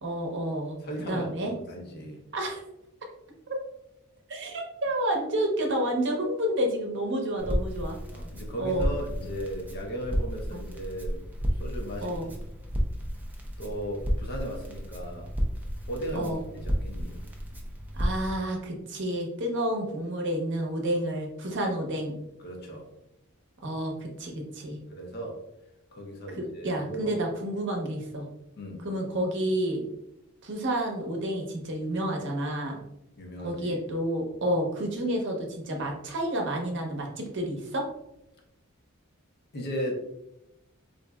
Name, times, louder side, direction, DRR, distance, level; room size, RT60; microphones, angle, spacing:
voice 1, 0.0-0.8 1.1-1.5 2.3-2.6 3.5-3.6 4.3-8.0 8.6-8.9 10.5-10.6 12.0-12.3 16.1-16.4 17.9-22.2 23.6-24.8 26.3-28.3 28.8-29.8 30.4-32.8 33.4-37.9, right 1 dB, 55° right, 1 dB, 0.7 m, -30 dB
voice 2, 0.8-2.2 8.1-11.2 11.5-12.3 13.6-15.3 15.9-17.2 21.4-21.6 22.4-22.9 24.9-25.4 25.9-27.2 28.5-28.8 33.2-33.8 39.5-39.9, equal, 50° left, 1 dB, 0.7 m, -36 dB
Crackle, 7.4-18.3, equal, 10° right, 0.4 m, -32 dB
3.8 x 2.6 x 2.2 m, 0.87 s
head